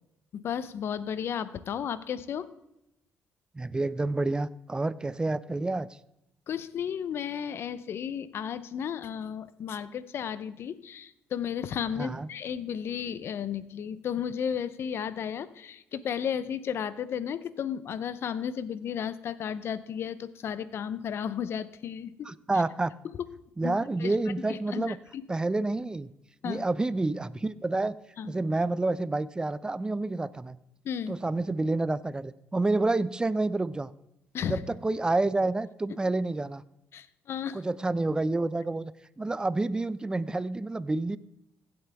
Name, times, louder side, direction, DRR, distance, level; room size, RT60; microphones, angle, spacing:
voice 1, 0.3-2.5 6.5-22.3 23.6-24.1 24.5-25.2 26.4-26.6 28.2-28.3 30.8-31.1 34.3-34.6 36.9-37.6, left 8 dB, 60° left, 15 dB, 0.8 m, -34 dB
voice 2, 3.5-5.9 12.0-12.3 22.2-22.9 23.6-25.0 25.3-26.1 26.4-28.0 28.2-30.6 31.1-33.9 34.4-36.6 37.5-38.9 39.2-41.2, right 2 dB, 15° right, 18 dB, 0.5 m, -29 dB
16.0 x 7.9 x 3.5 m, 0.86 s
cardioid pair, 80°, 5 cm